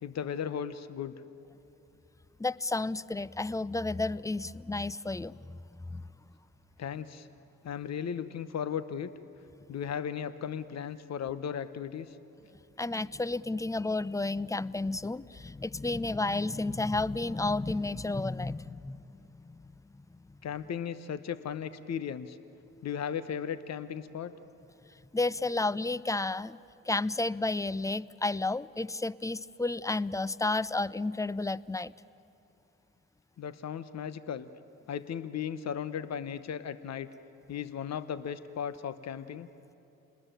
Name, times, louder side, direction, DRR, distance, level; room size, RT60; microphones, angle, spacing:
voice 1, 0.0-1.2 6.8-7.3 7.6-9.1 9.7-12.2 20.4-22.4 22.8-24.4 33.4-34.5 34.9-37.1 37.5-39.5, left 8 dB, 45° left, 14 dB, 1.1 m, -36 dB
voice 2, 2.4-5.4 5.9-6.1 12.8-19.0 19.4-19.6 25.1-26.6 26.9-31.9, left 2 dB, 10° left, 20 dB, 0.5 m, -31 dB
28.5 x 20.5 x 9.1 m, 2.8 s
hypercardioid pair, 45°, 37 cm